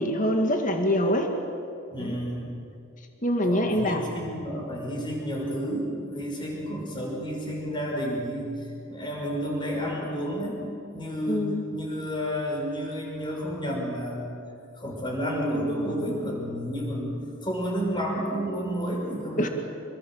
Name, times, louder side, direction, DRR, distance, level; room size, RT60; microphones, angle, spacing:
voice 1, 0.0-1.3 2.0-2.2 3.2-4.0 11.3-11.6 19.4-19.5, equal, 40° left, 4 dB, 2.1 m, -24 dB
voice 2, 1.9-2.5 3.4-8.5 8.9-10.6 10.9-14.3 14.8-17.2 17.4-19.5, equal, 25° left, -1 dB, 5.8 m, -31 dB
27.0 x 21.0 x 7.8 m, 2.5 s
head